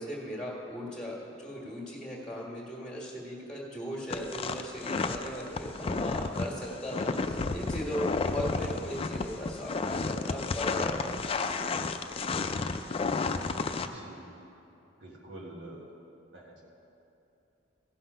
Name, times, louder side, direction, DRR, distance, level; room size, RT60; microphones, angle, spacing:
voice 1, 0.0-11.0, equal, 5° left, -3 dB, 1.7 m, -38 dB
sound 1, 4.1-13.9, left 4 dB, 30° left, 0.4 m, -31 dB
voice 2, 13.8-14.5 15.0-15.9 16.3-16.6, right 1 dB, 75° right, -3 dB, 1.8 m, -47 dB
15.5 x 5.9 x 5.5 m, 2.8 s
head